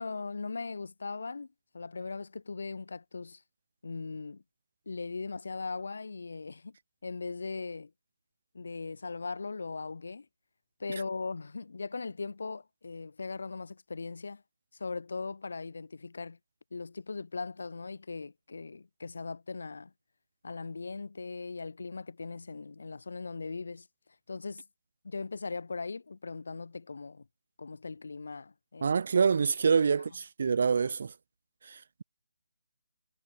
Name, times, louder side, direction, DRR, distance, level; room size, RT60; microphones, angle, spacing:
voice 1, 0.0-1.5 1.7-3.4 3.8-4.4 4.8-6.8 7.0-7.9 8.5-10.2 10.8-14.4 14.7-16.4 16.7-19.9 20.4-23.9 24.3-24.6 25.0-27.2 27.6-29.0, left 4 dB, 65° left, 5.1 m, -39 dB
voice 2, 28.8-31.1 31.7-32.0, right 5 dB, 55° right, 1.4 m, -26 dB
figure-of-eight pair, 150°, 0 cm